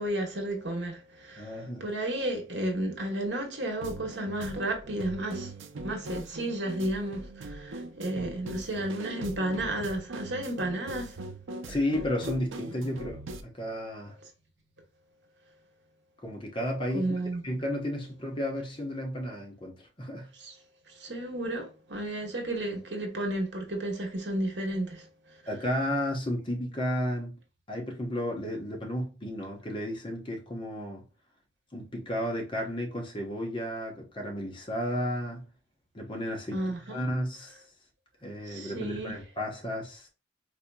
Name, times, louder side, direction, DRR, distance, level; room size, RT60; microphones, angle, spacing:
voice 1, 0.0-5.5 5.8-11.2 11.6-11.7 14.2-14.3 16.9-17.4 20.3-20.5 20.9-25.4 36.5-37.0 38.4-39.2, right 1 dB, 60° right, 1.1 m, -33 dB
voice 2, 1.4-1.8 11.7-14.1 16.2-17.1 17.4-20.3 25.5-27.4 27.7-31.0 31.7-35.5 35.9-37.6 38.2-40.1, equal, 25° left, 1.0 m, -33 dB
sound 1, 3.8-13.4, right 2 dB, 85° right, 0.5 m, -40 dB
4.2 x 2.8 x 2.2 m
head